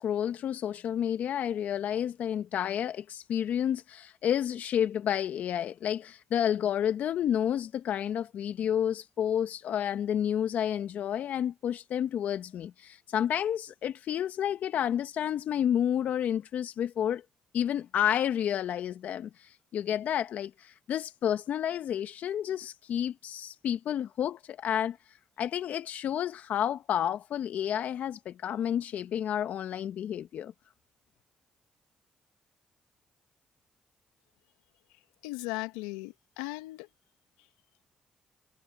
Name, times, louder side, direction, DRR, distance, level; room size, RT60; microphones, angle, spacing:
voice 1, 0.0-17.2 17.5-25.0 25.4-30.5, left 9 dB, 70° left, 1.3 m, -30 dB
voice 2, 35.2-36.9, left 21 dB, 90° left, 1.8 m, -37 dB
hypercardioid pair, 45°, 3 cm